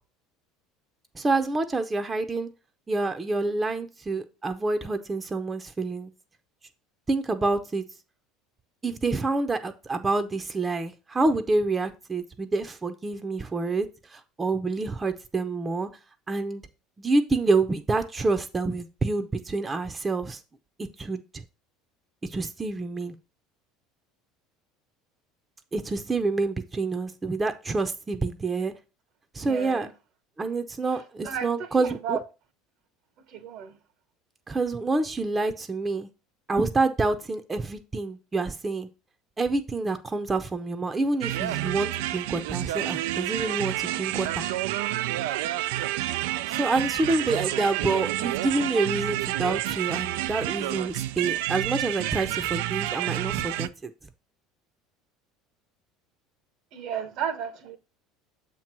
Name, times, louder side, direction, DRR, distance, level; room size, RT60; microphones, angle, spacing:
voice 1, 1.1-2.5 2.9-6.1 7.1-7.8 8.8-15.9 16.3-16.6 17.0-20.4 21.0-21.4 22.3-23.1 25.7-28.7 29.3-29.9 30.4-32.2 34.5-36.1 36.5-38.9 39.4-44.5 46.5-53.9, right 3 dB, 20° right, 0.7 m, -27 dB
voice 2, 29.4-29.9 31.2-32.2 33.3-33.8 56.7-57.8, right 8 dB, 60° right, 0.9 m, -33 dB
sound 1, 41.2-53.7, right 14 dB, 75° right, 0.3 m, -29 dB
7.1 x 3.1 x 5.9 m
hypercardioid pair, 80°, 0 cm